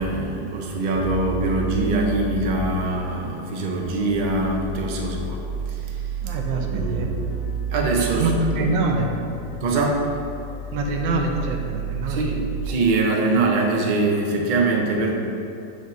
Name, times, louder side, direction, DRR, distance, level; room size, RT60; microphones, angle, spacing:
voice 1, 0.0-6.0 6.5-7.3 7.7-8.2 8.6-8.7 9.6-9.9 12.1-15.1, right 2 dB, 65° right, 0 dB, 0.4 m, -23 dB
sound 1, 1.0-12.7, right 4 dB, 75° left, 1.2 m, -31 dB
voice 2, 6.2-7.1 8.2-9.1 9.6-9.7 10.7-12.3, right 3 dB, 80° right, 2 dB, 1.4 m, -25 dB
6.5 x 5.0 x 3.9 m, 2.6 s
omnidirectional pair, 2.0 m